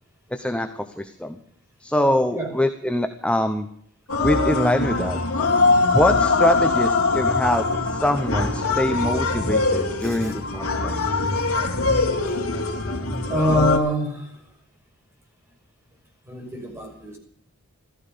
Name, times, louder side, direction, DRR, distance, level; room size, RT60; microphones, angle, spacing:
voice 1, 0.3-1.4 1.8-3.7 4.2-5.2 5.9-11.3, left 1 dB, 5° left, 6 dB, 1.0 m, -24 dB
sound 1, 4.1-13.8, left 3 dB, 70° left, 2.9 m, -22 dB
voice 2, 13.3-14.3 16.3-17.2, left 1 dB, 10° right, 1 dB, 5.6 m, -25 dB
15.0 x 13.5 x 6.9 m, 0.65 s
head